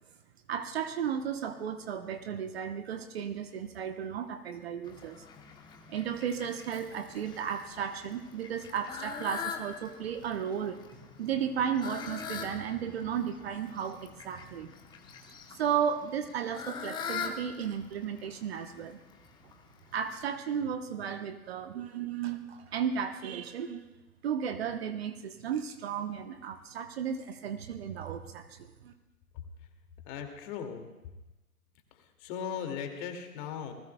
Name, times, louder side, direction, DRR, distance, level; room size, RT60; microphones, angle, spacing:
voice 1, 0.5-5.2 5.9-10.8 11.2-14.7 15.5-19.0 19.9-23.8 24.2-28.9, right 8 dB, 40° right, 7 dB, 1.0 m, -34 dB
Fowl, 4.8-20.2, left 6 dB, 10° left, 0.9 m, -44 dB
voice 2, 30.1-30.9 31.9-33.7, left 7 dB, 30° left, 4 dB, 2.4 m, -38 dB
28.5 x 20.0 x 2.3 m, 1.1 s
figure-of-eight pair, 120°, 45 cm